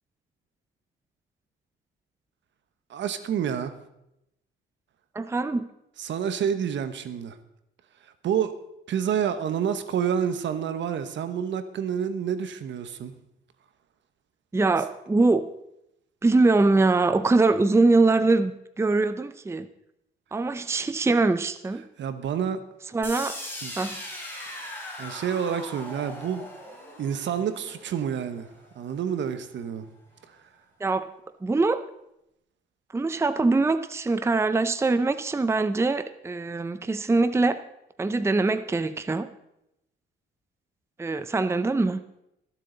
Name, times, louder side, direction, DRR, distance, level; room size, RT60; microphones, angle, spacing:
voice 1, 2.9-3.8 6.0-7.4 8.0-8.6 8.9-13.1 22.0-22.6 23.6-23.7 24.5-24.7 25.0-26.4 27.0-28.5 28.7-29.8 30.3-30.4, right 8 dB, 65° right, 10 dB, 1.2 m, -28 dB
voice 2, 5.1-5.7 14.5-15.5 16.2-18.5 18.8-19.7 20.3-21.8 22.9-23.3 23.8-24.0 30.8-31.1 31.4-31.8 32.9-37.6 38.0-39.3 41.0-42.0, right 3 dB, 15° right, 11 dB, 0.6 m, -23 dB
sound 1, 23.0-29.0, left 1 dB, 10° left, 4.1 m, -40 dB
23.0 x 7.7 x 4.0 m, 0.84 s
cardioid pair, 90°, 20 cm